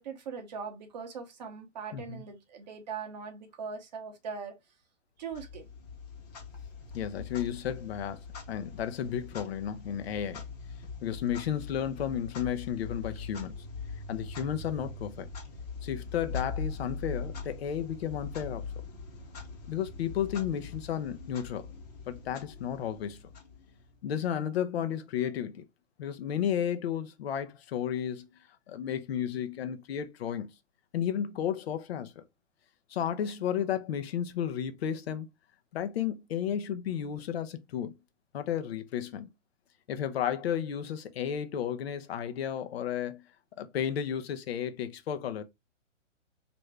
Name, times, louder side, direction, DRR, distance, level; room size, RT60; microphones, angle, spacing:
voice 1, 0.0-4.6 5.2-5.7, right 6 dB, 35° right, 0.7 m, -40 dB
voice 2, 1.9-2.2 6.9-8.2 8.5-10.4 11.0-13.5 14.1-15.3 15.8-18.6 19.7-21.6 22.1-23.2 24.0-25.7 26.0-28.3 28.7-30.5 30.9-32.2 32.9-35.3 35.7-37.9 38.3-39.3 39.9-43.2 43.6-45.4, left 9 dB, 55° left, 0.6 m, -33 dB
Clock, 5.3-24.0, left 4 dB, 30° left, 0.9 m, -42 dB
3.2 x 2.6 x 3.1 m
hypercardioid pair, 150°, 37 cm